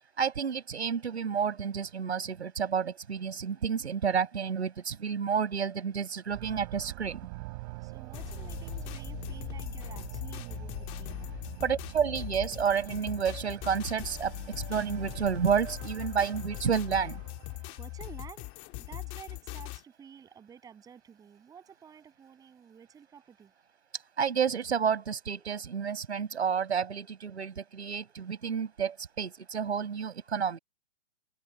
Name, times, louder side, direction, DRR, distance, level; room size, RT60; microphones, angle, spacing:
voice 1, 0.2-7.2 11.6-17.2 24.2-30.6, right 7 dB, 85° right, 5.4 m, -30 dB
sound 1, 6.3-18.2, right 23 dB, 35° right, 6.5 m, -45 dB
voice 2, 7.8-11.5 17.8-18.5 18.8-23.5, right 7 dB, 10° right, 7.1 m, -51 dB
sound 2, 8.1-19.8, left 24 dB, 25° left, 1.8 m, -40 dB
hypercardioid pair, 155°, 32 cm